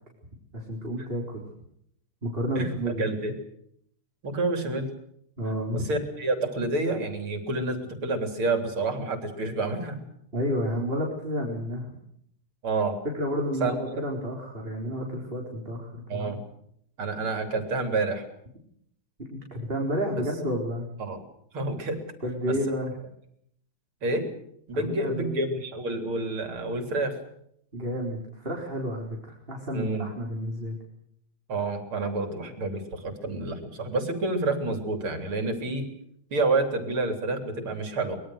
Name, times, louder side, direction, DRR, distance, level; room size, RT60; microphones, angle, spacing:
voice 1, 0.5-1.4 2.2-3.2 5.4-5.9 10.3-11.9 13.1-16.4 19.2-20.9 22.2-22.9 24.7-25.5 27.7-30.8, equal, 25° right, 0 dB, 4.4 m, -31 dB
voice 2, 2.6-3.3 4.2-4.9 5.7-10.0 12.6-13.0 13.6-13.8 16.1-16.4 17.0-18.2 21.0-21.2 21.5-22.0 22.5-22.6 24.0-24.3 24.7-27.2 29.7-30.1 31.5-35.9 36.3-38.2, right 2 dB, 85° right, 6 dB, 4.5 m, -28 dB
24.0 x 22.5 x 6.5 m, 0.71 s
omnidirectional pair, 2.3 m